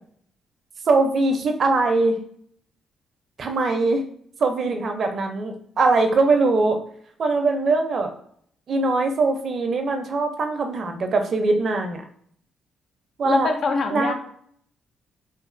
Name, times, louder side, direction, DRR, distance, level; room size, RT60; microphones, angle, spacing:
voice 1, 0.9-2.1 3.4-4.0 4.4-6.8 7.2-8.1 8.7-12.0 13.2-13.5 13.9-14.1, right 3 dB, 50° right, 5 dB, 0.5 m, -21 dB
voice 2, 13.2-14.1, left 4 dB, 60° left, 5 dB, 0.4 m, -24 dB
3.0 x 2.3 x 2.5 m, 0.62 s
cardioid pair, 90°, 0 cm